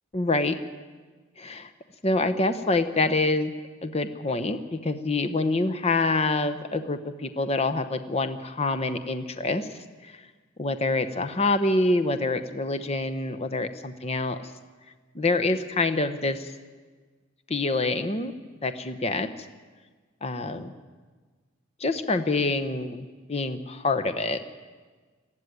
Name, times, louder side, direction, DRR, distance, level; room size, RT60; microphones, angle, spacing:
voice 1, 0.1-0.6 1.4-1.7 2.0-3.5 3.8-9.7 10.0-10.2 10.6-14.4 15.1-16.5 17.5-18.3 18.6-19.3 20.2-20.7 21.8-24.5, left 2 dB, 30° left, 8 dB, 0.9 m, -26 dB
19.5 x 14.0 x 9.5 m, 1.4 s
head